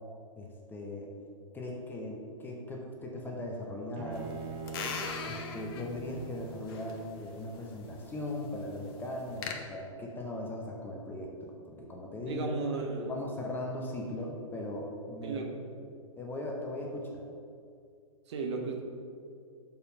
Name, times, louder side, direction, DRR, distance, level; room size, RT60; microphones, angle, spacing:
voice 1, 0.4-1.1 1.5-4.3 5.2-12.5 13.1-15.4 16.2-17.2, left 1 dB, 10° left, -1 dB, 0.8 m, -39 dB
Bowed string instrument, 4.0-7.2, right 5 dB, 25° right, 0.5 m, -44 dB
sound 1, 4.1-9.5, left 5 dB, 45° left, 0.8 m, -42 dB
voice 2, 12.2-13.2 15.2-15.5 18.3-18.8, right 3 dB, 55° right, 2 dB, 1.1 m, -34 dB
6.7 x 4.4 x 5.4 m, 2.4 s
figure-of-eight pair, 110°, 18 cm